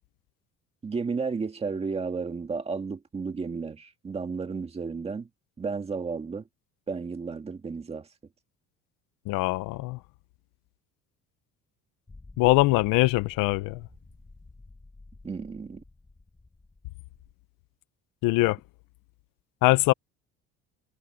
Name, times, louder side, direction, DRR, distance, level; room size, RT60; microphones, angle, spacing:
voice 1, 0.8-5.3 5.6-6.5 6.9-8.1 15.2-15.8, right 5 dB, 20° right, 2.0 m, -33 dB
voice 2, 9.3-10.0 12.4-13.9 18.2-18.6 19.6-19.9, left 20 dB, 80° left, 0.9 m, -22 dB
sound 1, 12.1-17.3, left 3 dB, 10° left, 1.6 m, -50 dB
cardioid pair, 170°, 32 cm